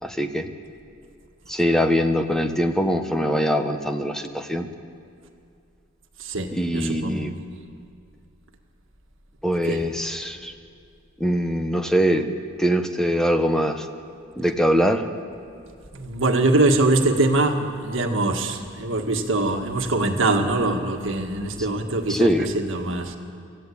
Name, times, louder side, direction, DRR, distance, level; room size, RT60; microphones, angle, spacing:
voice 1, 0.0-0.5 1.5-4.7 6.5-7.3 9.4-10.5 11.2-12.3 12.6-13.9 14.4-15.1 21.6-21.7 22.1-22.5, equal, 5° left, 6 dB, 1.1 m, -22 dB
voice 2, 6.2-7.4 9.6-9.9 15.9-23.2, right 2 dB, 70° right, 4 dB, 1.8 m, -23 dB
25.0 x 15.0 x 8.7 m, 2.4 s
head